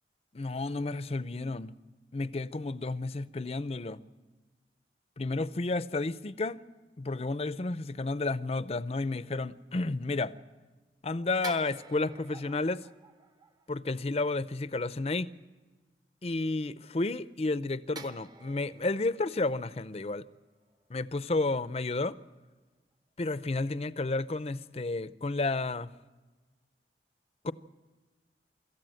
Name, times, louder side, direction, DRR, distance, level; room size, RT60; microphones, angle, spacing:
voice 1, 0.3-1.7 2.1-4.0 5.2-6.6 7.0-10.3 11.0-12.8 13.7-15.3 16.2-20.3 20.9-22.2 23.2-25.9 27.4-27.5, left 2 dB, 35° left, 0.6 m, -31 dB
sound 1, 11.4-14.1 18.0-21.2 21.5-21.7, right 3 dB, 25° right, 0.8 m, -50 dB
25.5 x 14.0 x 7.7 m
head